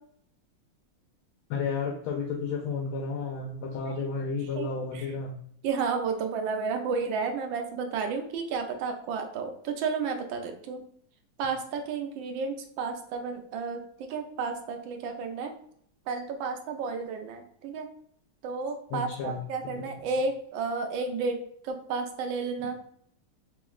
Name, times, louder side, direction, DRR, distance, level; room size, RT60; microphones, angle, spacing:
voice 1, 1.5-5.3 18.9-19.9, left 4 dB, 80° left, 1 dB, 1.4 m, -32 dB
voice 2, 5.6-10.8 11.4-15.5 16.1-17.9 18.4-21.4 21.6-22.9, right 4 dB, 75° right, 4 dB, 1.2 m, -32 dB
3.7 x 3.0 x 2.4 m, 0.66 s
omnidirectional pair, 2.4 m